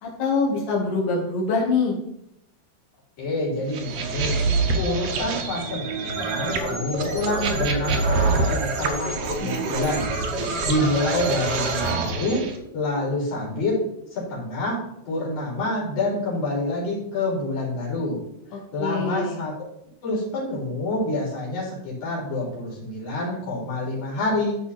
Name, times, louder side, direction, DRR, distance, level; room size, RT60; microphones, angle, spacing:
voice 1, 0.0-2.0 18.5-19.4, left 4 dB, 75° left, -2 dB, 4.0 m, -24 dB
voice 2, 3.2-4.4 4.8-10.1 10.6-12.5 12.7-13.8 14.1-14.8 15.1-18.2 18.7-19.5 20.0-24.6, left 2 dB, 60° left, -5 dB, 5.4 m, -27 dB
sound 1, 3.7-12.5, right 4 dB, 75° right, 1.5 m, -27 dB
sound 2, 6.0-13.1, right 1 dB, 25° right, 3.2 m, -30 dB
13.5 x 4.9 x 4.2 m, 0.78 s
omnidirectional pair, 4.6 m